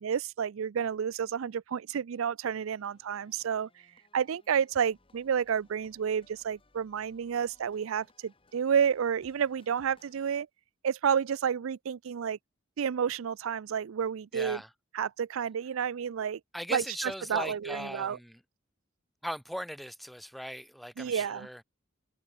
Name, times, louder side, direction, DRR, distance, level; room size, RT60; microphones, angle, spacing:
voice 1, 0.0-3.7 4.1-10.5 10.8-12.4 12.8-14.6 14.9-16.4 16.7-18.2 21.0-21.5, right 7 dB, 90° right, 0.4 m, -30 dB
sound 1, 2.5-10.3, left 2 dB, 25° left, 3.6 m, -66 dB
voice 2, 14.3-14.7 16.5-18.4 19.2-21.6, equal, ahead, 0.8 m, -39 dB
head